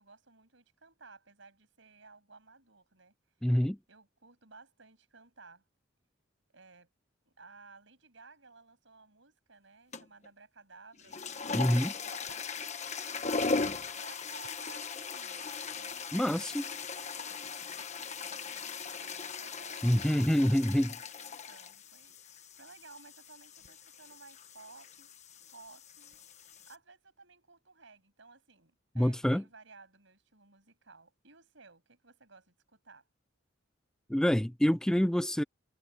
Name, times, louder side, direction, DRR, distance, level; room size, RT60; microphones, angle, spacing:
voice 1, 0.0-3.1 3.9-5.6 6.5-6.9 7.3-13.5 14.0-16.8 17.1-25.1 25.5-26.2 26.7-33.1, right 4 dB, 65° right, 7.1 m, -57 dB
voice 2, 3.4-3.8 11.5-11.9 16.1-16.6 19.8-20.9 29.0-29.4 34.1-35.4, equal, 5° left, 0.3 m, -26 dB
sound 1, 9.9-10.3 10.9-26.8, left 4 dB, 35° left, 1.4 m, -39 dB
head